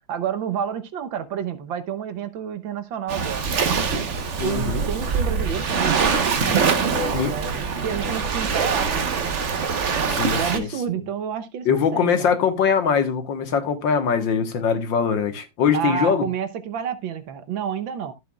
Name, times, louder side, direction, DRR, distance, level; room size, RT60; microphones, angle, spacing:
voice 1, 0.1-3.6 4.4-9.3 10.3-12.3 15.7-18.1, right 8 dB, 90° right, 1.8 m, -30 dB
Waves surf, 3.1-10.6, right 5 dB, 45° right, 1.3 m, -24 dB
sound 1, 3.4-9.1, left 7 dB, 40° left, 1.8 m, -40 dB
voice 2, 4.4-4.8 7.1-7.3 10.1-10.7 11.7-16.2, left 6 dB, 80° left, 2.1 m, -22 dB
13.5 x 8.1 x 2.4 m
omnidirectional pair, 2.0 m